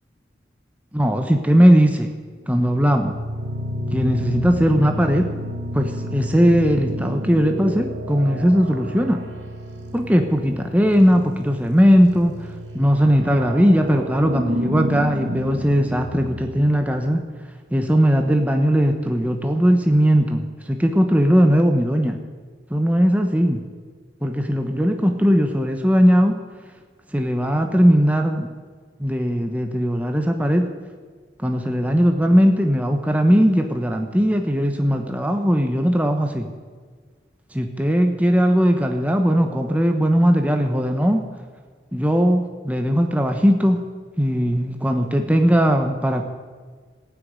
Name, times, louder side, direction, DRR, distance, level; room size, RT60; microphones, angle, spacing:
voice 1, 0.9-2.1 2.5-3.2 3.9-5.3 5.7-9.2 9.9-12.3 12.7-17.2 17.7-22.2 22.7-23.6 24.2-26.4 27.1-28.5 29.0-30.7 31.4-36.5 37.5-41.2 41.9-43.8 44.2-46.3, equal, 10° right, 4 dB, 1.1 m, -18 dB
sound 1, 2.4-17.0, equal, 70° right, 1.9 m, -31 dB
15.0 x 9.7 x 9.7 m, 1.6 s
head